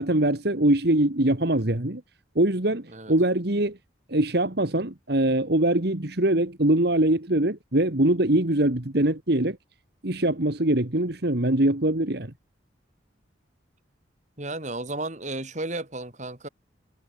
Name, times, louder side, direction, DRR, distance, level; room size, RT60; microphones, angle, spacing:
voice 1, 0.0-2.0 2.4-3.8 4.1-9.6 10.0-12.3, right 1 dB, 55° right, 2.0 m, -23 dB
voice 2, 14.4-16.5, right 2 dB, 40° right, 3.6 m, -33 dB
head